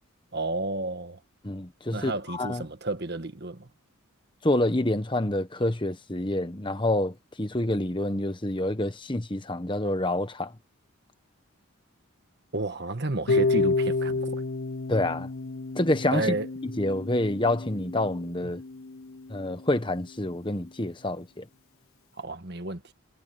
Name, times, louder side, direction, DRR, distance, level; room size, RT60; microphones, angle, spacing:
voice 1, 0.3-1.2 1.9-3.7 12.5-14.4 16.1-16.5 22.2-22.9, right 2 dB, 50° right, 1.6 m, -31 dB
voice 2, 1.4-2.6 4.4-10.5 14.9-15.3 15.7-16.3 16.8-18.6 19.3-21.4, left 1 dB, 20° left, 1.1 m, -27 dB
Harp, 13.3-19.3, left 3 dB, 70° left, 0.8 m, -30 dB
head